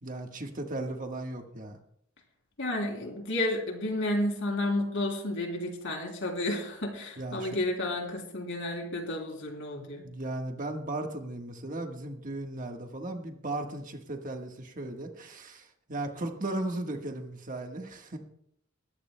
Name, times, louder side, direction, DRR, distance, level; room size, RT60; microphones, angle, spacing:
voice 1, 0.0-1.8 7.2-7.5 10.0-18.2, right 2 dB, 40° right, 3 dB, 1.4 m, -36 dB
voice 2, 2.6-10.1, left 1 dB, 60° left, 2 dB, 3.1 m, -31 dB
21.5 x 14.5 x 2.2 m, 0.70 s
head